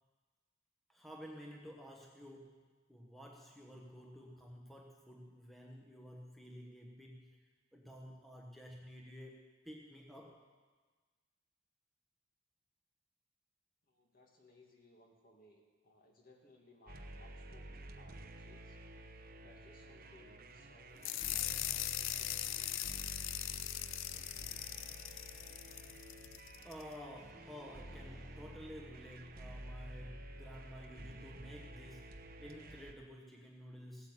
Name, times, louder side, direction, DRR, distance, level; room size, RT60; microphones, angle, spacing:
voice 1, 0.9-2.6 2.9-7.3 7.7-10.4 26.6-34.1, equal, ahead, -1 dB, 1.1 m, -52 dB
voice 2, 13.9-18.8 19.4-22.7, left 2 dB, 45° left, 1 dB, 2.1 m, -64 dB
sound 1, 16.9-32.9, right 1 dB, 45° right, 0.9 m, -51 dB
sound 2, 21.0-26.8, left 14 dB, 65° left, 0.4 m, -40 dB
sound 3, 27.1-29.6, equal, 15° left, 1.4 m, -61 dB
17.0 x 8.7 x 7.4 m, 1.4 s
head